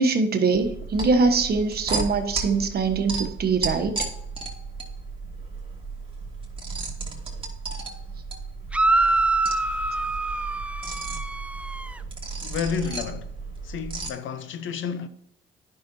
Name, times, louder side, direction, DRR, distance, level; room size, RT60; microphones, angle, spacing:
voice 1, 0.0-4.0, right 4 dB, 50° right, 1.2 m, -23 dB
sound 1, 0.5-14.1, right 3 dB, 25° right, 2.2 m, -34 dB
sound 2, 8.7-12.0, right 2 dB, 5° right, 0.3 m, -25 dB
voice 2, 12.4-13.4 13.6-15.1, left 6 dB, 80° left, 0.8 m, -31 dB
10.0 x 5.8 x 2.7 m
cardioid pair, 90°, 20 cm